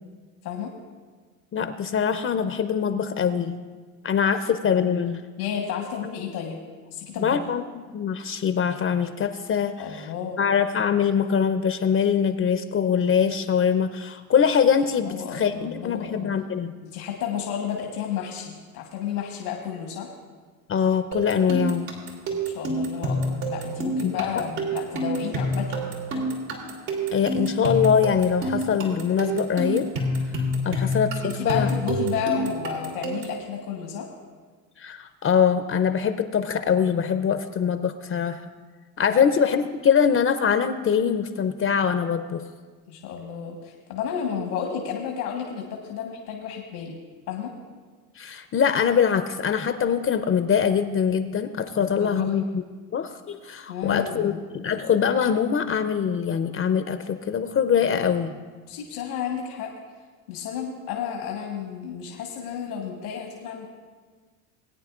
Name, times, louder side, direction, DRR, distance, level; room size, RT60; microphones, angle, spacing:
voice 1, 1.5-3.6 4.0-5.2 7.2-7.6 7.9-10.0 10.4-16.7 20.7-21.9 24.0-24.1 27.1-29.9 30.6-31.7 34.8-38.4 39.0-42.4 48.2-52.6 52.9-58.3, left 7 dB, 30° left, 9 dB, 0.6 m, -23 dB
voice 2, 5.4-6.6 6.9-7.4 9.8-10.4 15.0-16.3 16.8-20.1 22.5-25.8 26.1-26.2 31.2-34.1 39.1-39.2 42.9-47.0 47.3-47.5 51.8-52.3 53.7-54.4 58.7-59.7 60.3-63.7, left 8 dB, 90° left, 2 dB, 1.5 m, -32 dB
sound 1, 21.1-33.4, right 1 dB, 80° right, 2.8 m, -28 dB
21.0 x 9.3 x 2.4 m, 1.5 s
hypercardioid pair, 75°, 43 cm